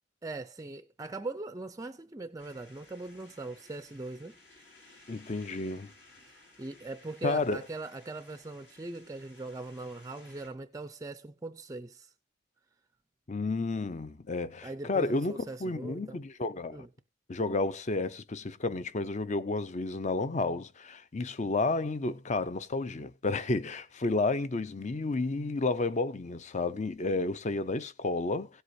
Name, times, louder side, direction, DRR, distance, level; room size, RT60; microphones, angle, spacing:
voice 1, 0.2-4.3 4.9-5.0 6.3-12.1 14.6-16.2 16.7-16.9, right 2 dB, 15° right, 0.5 m, -41 dB
sound 1, 2.4-10.5, left 2 dB, 70° left, 5.1 m, -58 dB
voice 2, 5.1-5.9 7.2-7.6 13.3-16.9 17.3-28.5, left 3 dB, 35° left, 0.6 m, -31 dB
17.0 x 8.1 x 2.7 m
head